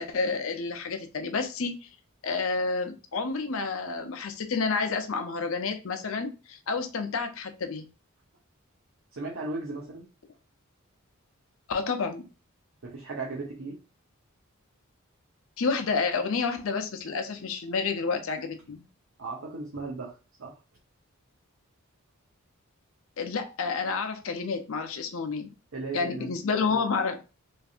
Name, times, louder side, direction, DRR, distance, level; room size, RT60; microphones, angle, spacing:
voice 1, 0.0-1.9 2.2-7.9 11.7-12.2 15.6-18.8 23.2-25.5 25.9-27.5, left 4 dB, 70° left, 6 dB, 0.6 m, -30 dB
voice 2, 9.1-10.1 12.8-13.8 19.2-20.6 25.7-26.3 26.7-26.8, right 3 dB, 60° right, -2 dB, 0.7 m, -36 dB
3.2 x 2.6 x 2.4 m, 0.31 s
head